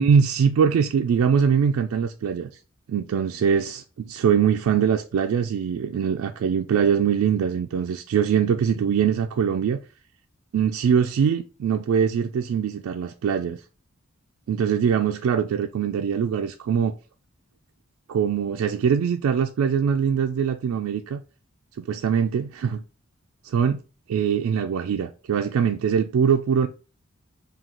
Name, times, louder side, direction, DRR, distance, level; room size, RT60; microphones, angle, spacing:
voice 1, 0.0-2.5 2.9-9.8 10.5-13.6 14.5-16.9 18.1-21.2 21.8-22.8 23.4-23.8 24.1-26.7, right 7 dB, 85° right, 0.3 m, -22 dB
3.7 x 2.3 x 4.4 m
head